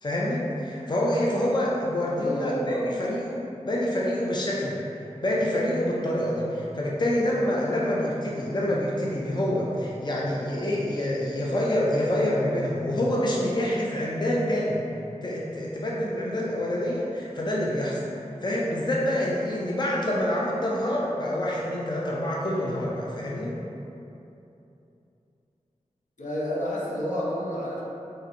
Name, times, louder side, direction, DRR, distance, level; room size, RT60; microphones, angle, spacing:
voice 1, 0.0-4.8 5.2-14.8 15.2-18.0 18.4-23.6, left 1 dB, 35° left, -4 dB, 0.5 m, -26 dB
voice 2, 2.1-2.8 26.2-27.8, equal, 75° left, -6 dB, 0.9 m, -30 dB
3.8 x 2.6 x 4.2 m, 2.8 s
wide cardioid pair, 45°, 13 cm